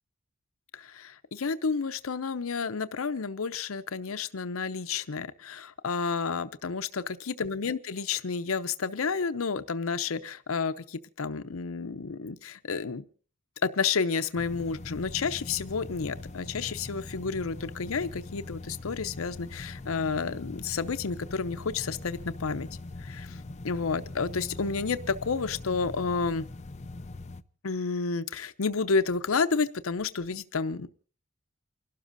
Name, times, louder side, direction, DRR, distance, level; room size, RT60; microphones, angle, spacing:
voice 1, 0.7-13.0 13.6-22.7 23.0-23.4 23.6-26.4 27.6-30.9, left 5 dB, 85° left, 11 dB, 0.7 m, -30 dB
Roomtone Hallway Spinnerij Front, 14.4-27.4, left 2 dB, 35° left, 0.6 m, -42 dB
29.0 x 12.5 x 2.6 m, 0.41 s
head